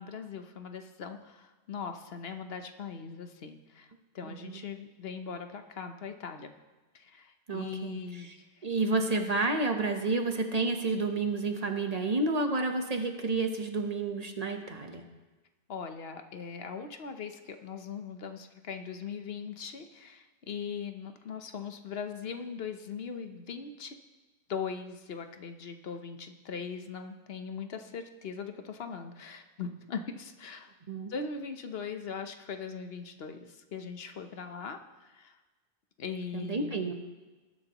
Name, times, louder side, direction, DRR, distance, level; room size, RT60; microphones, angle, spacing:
voice 1, 0.0-6.5 6.9-8.7 15.7-24.0 24.5-30.7 31.1-35.4 36.0-36.9, left 6 dB, 75° left, 7 dB, 1.0 m, -40 dB
voice 2, 4.2-4.6 7.5-8.3 8.6-15.0 30.9-31.1 36.3-36.9, right 3 dB, 40° right, 5 dB, 1.1 m, -30 dB
20.0 x 9.6 x 3.0 m, 1.2 s
omnidirectional pair, 1.0 m